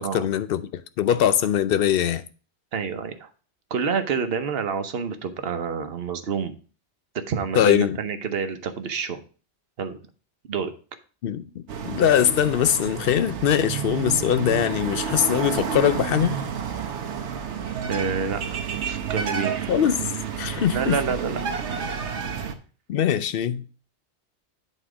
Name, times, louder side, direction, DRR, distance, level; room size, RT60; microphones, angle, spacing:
voice 1, 0.0-2.2 7.6-8.0 11.2-16.4 19.7-20.0 20.4-21.0 22.9-23.6, left 10 dB, 65° left, 0.7 m, -22 dB
voice 2, 2.7-3.3 3.7-6.5 7.3-9.2 9.8-10.0 10.5-10.7 17.9-18.4 18.8-19.8 20.7-21.4, right 6 dB, 65° right, 1.0 m, -28 dB
sound 1, 11.7-22.5, right 7 dB, 90° right, 1.2 m, -30 dB
8.2 x 4.3 x 4.9 m
omnidirectional pair, 1.1 m